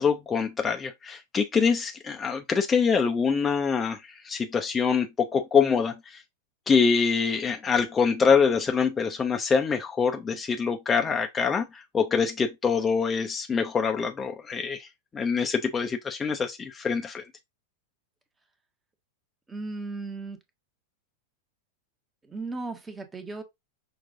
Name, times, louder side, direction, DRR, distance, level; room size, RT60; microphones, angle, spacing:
voice 1, 0.0-6.2 6.7-14.9 15.1-17.2, left 5 dB, 20° left, 0.6 m, -25 dB
voice 2, 19.5-20.4 22.3-23.4, right 3 dB, 15° right, 1.0 m, -36 dB
5.9 x 2.5 x 3.6 m
figure-of-eight pair, 90°, 0 cm